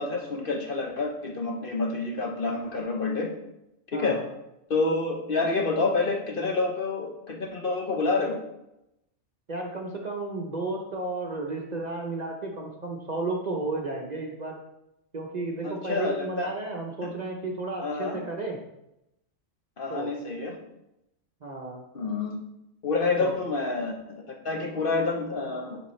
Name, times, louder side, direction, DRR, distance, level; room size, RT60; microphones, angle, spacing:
voice 1, 0.0-3.3 3.9-4.2 4.7-8.4 15.6-16.5 17.0-17.1 17.8-18.2 19.8-20.6 21.9-22.4 22.8-25.8, left 3 dB, 50° left, 1 dB, 0.8 m, -28 dB
voice 2, 3.9-4.2 9.5-14.5 15.1-18.6 19.9-20.1 21.4-21.8 23.2-23.4, right 2 dB, 40° right, 0 dB, 0.7 m, -33 dB
7.0 x 5.1 x 3.1 m, 0.87 s
omnidirectional pair, 1.4 m